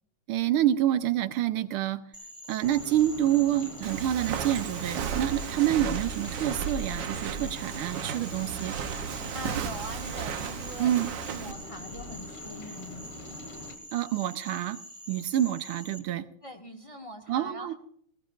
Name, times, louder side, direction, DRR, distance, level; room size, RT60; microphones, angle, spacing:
voice 1, 0.3-2.0 2.5-8.8 10.8-11.1 13.9-14.8 15.1-16.3 17.3-17.7, right 12 dB, 85° right, 12 dB, 1.6 m, -27 dB
Frog, 2.1-16.0, equal, 15° right, 2.5 m, -46 dB
Rain, 2.6-13.8, left 2 dB, 85° left, 2.6 m, -44 dB
Walk footsteps, 3.8-11.5, right 7 dB, 65° right, 1.4 m, -35 dB
voice 2, 9.3-13.1 16.4-17.7, equal, 15° left, 4 dB, 1.4 m, -42 dB
19.5 x 17.5 x 2.5 m, 0.62 s
omnidirectional pair, 2.4 m